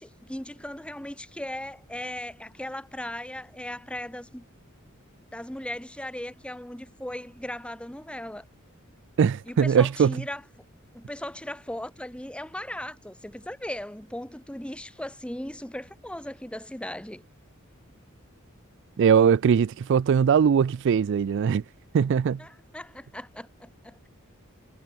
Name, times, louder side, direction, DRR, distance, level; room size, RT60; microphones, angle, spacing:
voice 1, 0.0-4.5 5.3-8.4 9.5-10.4 10.9-17.2 22.4-24.1, left 1 dB, 5° left, 1.5 m, -37 dB
voice 2, 9.2-10.1 19.0-21.6 21.9-22.4, right 7 dB, 60° right, 0.3 m, -21 dB
head